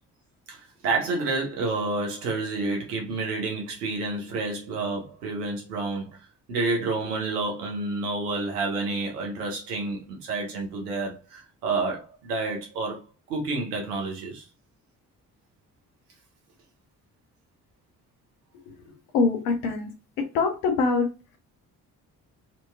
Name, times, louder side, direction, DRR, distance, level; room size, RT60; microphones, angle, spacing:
voice 1, 0.5-6.2 6.5-13.0 13.3-14.4, right 3 dB, 90° right, 1.1 m, -29 dB
voice 2, 19.1-19.9 20.2-21.1, left 4 dB, 85° left, 1.0 m, -23 dB
4.1 x 2.9 x 2.3 m
hypercardioid pair, 40°, 45 cm